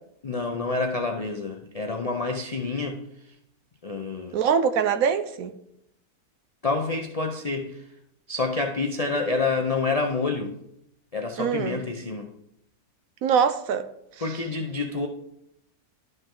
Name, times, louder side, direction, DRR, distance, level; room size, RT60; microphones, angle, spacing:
voice 1, 0.2-3.3 3.8-4.4 6.6-7.9 8.3-10.5 11.1-12.3 14.2-15.1, left 3 dB, 50° left, 0.4 m, -28 dB
voice 2, 4.3-5.5 11.4-11.8 13.2-13.9, right 7 dB, 70° right, 1.0 m, -23 dB
12.0 x 5.3 x 3.8 m
omnidirectional pair, 1.6 m